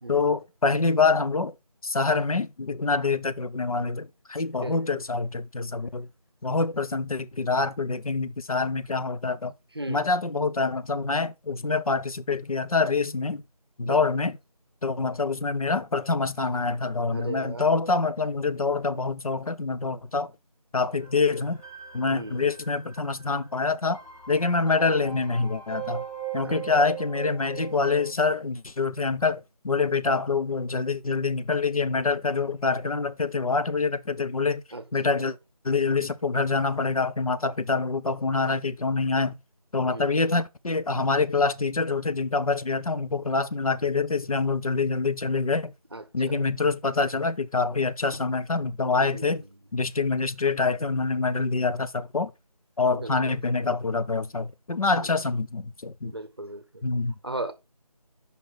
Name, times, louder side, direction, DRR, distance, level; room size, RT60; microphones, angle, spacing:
voice 1, 0.1-1.5 1.8-6.1 6.4-9.5 9.9-13.4 13.8-14.4 14.8-20.3 20.7-21.6 21.9-24.0 24.3-26.0 26.3-34.6 34.9-35.4 35.6-39.4 39.7-45.7 46.1-49.4 49.7-52.3 52.8-56.1 56.8-57.1, left 4 dB, 60° left, 0.6 m, -26 dB
voice 2, 4.6-5.0 9.7-10.1 13.8-14.2 17.1-17.7 22.1-22.6 26.3-26.6 34.7-34.8 35.1-35.2 39.8-40.2 45.9-46.5 49.0-49.5 52.9-53.4 54.9-55.1 56.0-56.8 57.2-57.5, right 2 dB, 40° right, 0.7 m, -38 dB
sound 1, 21.0-28.1, right 10 dB, 80° left, 4.1 m, -40 dB
5.3 x 4.2 x 4.6 m
figure-of-eight pair, 175°, 20 cm